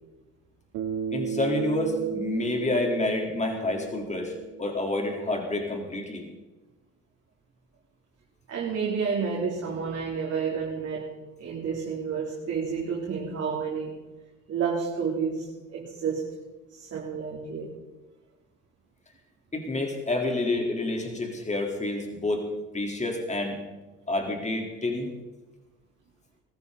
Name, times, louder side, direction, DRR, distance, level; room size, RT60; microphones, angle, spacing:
Bass guitar, 0.7-5.1, right 7 dB, 75° right, 2.3 m, -34 dB
voice 1, 1.1-6.2 19.5-22.5 22.7-23.6 24.1-25.1, left 2 dB, 20° left, 3.8 m, -28 dB
voice 2, 8.5-11.1 11.4-14.0 14.5-16.3 16.7-17.8, right 6 dB, 50° right, 3.6 m, -30 dB
20.5 x 14.5 x 4.1 m
supercardioid pair, 70°, 31 cm